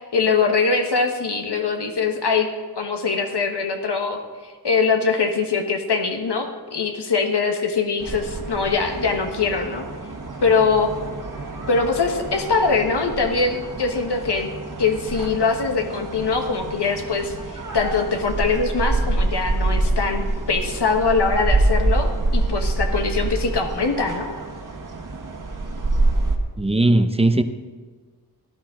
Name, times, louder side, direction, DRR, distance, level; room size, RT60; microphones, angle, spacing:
voice 1, 0.0-2.5 2.7-9.8 10.4-10.9 11.7-14.5 14.8-24.3, left 4 dB, 85° left, 4 dB, 1.4 m, -22 dB
sound 1, 8.0-26.4, right 2 dB, 50° right, 1.6 m, -26 dB
voice 2, 26.6-27.4, right 2 dB, 15° right, 9 dB, 0.7 m, -18 dB
17.5 x 11.5 x 3.8 m, 1.4 s
wide cardioid pair, 80°, 40 cm